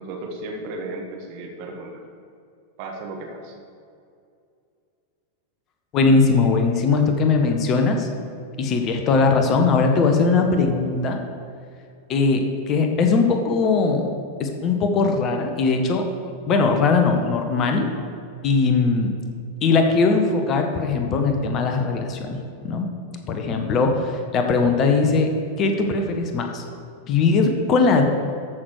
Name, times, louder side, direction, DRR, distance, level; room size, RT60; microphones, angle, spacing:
voice 1, 0.0-2.0 2.8-3.6, right 2 dB, 45° right, 1 dB, 1.9 m, -34 dB
voice 2, 5.9-8.1 8.6-11.2 12.1-14.1 14.4-16.1 16.5-17.9 18.4-19.1 19.6-22.4 22.6-22.9 23.3-26.6 27.1-28.0, left 4 dB, 35° left, 4 dB, 1.3 m, -20 dB
13.5 x 6.3 x 4.9 m, 2.4 s
figure-of-eight pair, 90°, 0 cm